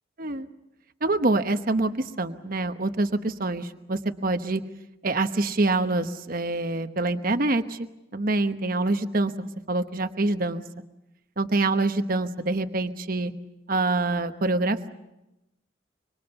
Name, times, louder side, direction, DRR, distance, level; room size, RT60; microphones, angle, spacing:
voice 1, 1.0-4.6 5.0-7.9 8.1-10.6 11.4-13.3 13.7-14.9, right 2 dB, 50° right, 8 dB, 1.1 m, -26 dB
25.0 x 24.5 x 7.0 m, 0.94 s
head